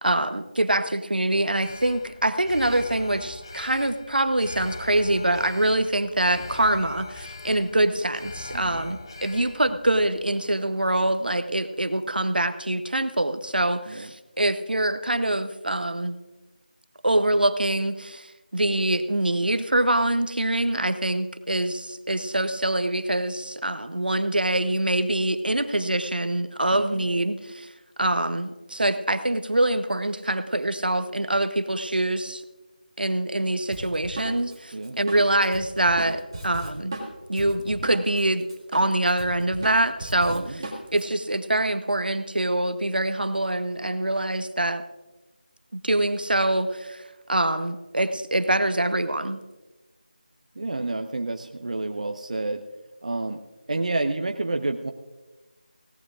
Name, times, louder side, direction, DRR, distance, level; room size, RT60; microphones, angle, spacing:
voice 1, 0.0-16.1 17.0-27.7 28.0-32.4 33.0-36.9 37.3-38.4 38.7-40.6 40.9-44.8 45.7-47.0 47.3-49.4, right 1 dB, 75° right, 10 dB, 1.0 m, -24 dB
Alarm, 1.6-11.9 12.2-12.3, left 3 dB, 30° left, 0.5 m, -42 dB
voice 2, 8.5-8.8 13.9-14.1 26.7-27.0 34.7-35.0 40.3-40.6 50.5-52.6 53.0-53.4 53.7-54.9, right 2 dB, 50° right, 6 dB, 0.7 m, -29 dB
Drum kit, 33.7-38.2 38.5-41.0, right 2 dB, 30° right, 2.0 m, -36 dB
20.5 x 17.0 x 2.5 m, 1.1 s
figure-of-eight pair, 165°, 5 cm